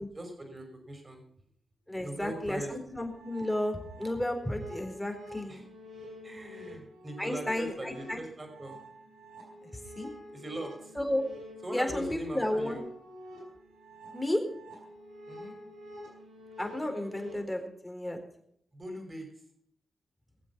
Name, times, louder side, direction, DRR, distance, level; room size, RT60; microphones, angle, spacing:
voice 1, 0.1-1.2 2.0-3.0 5.5-5.6 6.2-8.8 10.3-10.9 11.6-12.8 15.3-15.6 18.7-19.3, right 1 dB, 35° right, 4 dB, 5.6 m, -40 dB
voice 2, 1.9-5.6 7.2-8.2 10.0-10.1 11.0-11.2 11.7-12.8 14.1-14.4 16.6-18.2, left 1 dB, 10° left, 4 dB, 4.0 m, -32 dB
sound 1, 3.0-17.4, equal, 90° right, 4.7 m, -48 dB
21.0 x 7.6 x 6.1 m, 0.68 s
supercardioid pair, 45°, 0 cm